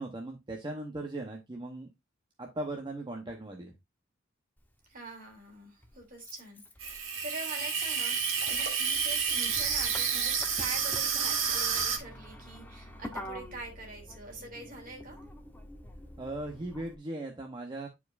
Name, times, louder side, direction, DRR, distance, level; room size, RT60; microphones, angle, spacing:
voice 1, 0.0-1.9 2.4-3.7 16.2-17.9, right 2 dB, 25° right, 1 dB, 0.9 m, -38 dB
Motor vehicle (road), 4.6-4.7 5.8-17.0, equal, 10° left, 1.0 m, -47 dB
voice 2, 4.9-15.2, right 2 dB, 45° right, 2 dB, 2.7 m, -44 dB
Water tap faucet / Sink (filling or washing), 6.8-12.0, right 6 dB, 75° right, 1.5 m, -30 dB
10.5 x 4.7 x 2.5 m, 0.20 s
head